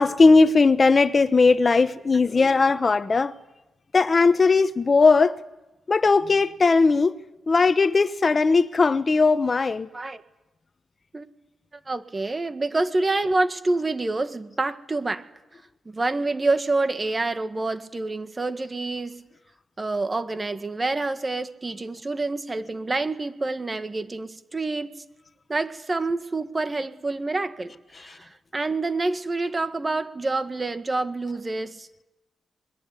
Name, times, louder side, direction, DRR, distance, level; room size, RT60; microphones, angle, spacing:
voice 1, 0.0-3.3 3.9-5.4 5.9-7.1 7.5-9.9 28.1-28.2, left 4 dB, 40° left, 1.0 m, -18 dB
voice 2, 11.9-15.2 15.9-19.2 19.8-25.0 25.5-27.7 28.0-31.9, right 2 dB, 30° right, 1.8 m, -27 dB
26.5 x 21.5 x 9.9 m
cardioid pair, 70°, 0 cm